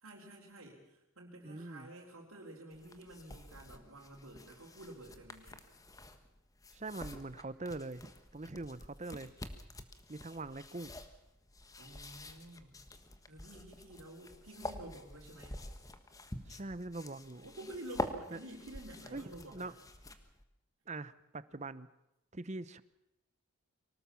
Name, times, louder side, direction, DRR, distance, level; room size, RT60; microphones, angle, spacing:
voice 1, 0.0-5.6 11.8-12.8 13.3-15.6 17.4-19.7, right 1 dB, 80° right, -3 dB, 4.1 m, -50 dB
voice 2, 1.4-1.9 6.7-9.3 10.1-10.9 16.5-17.5 18.3-18.4 19.1-19.7 20.9-21.9 22.3-22.8, right 2 dB, 35° right, 15 dB, 0.8 m, -43 dB
sound 1, 2.7-20.4, left 1 dB, 15° left, 1.4 m, -47 dB
24.0 x 19.0 x 7.1 m, 0.88 s
head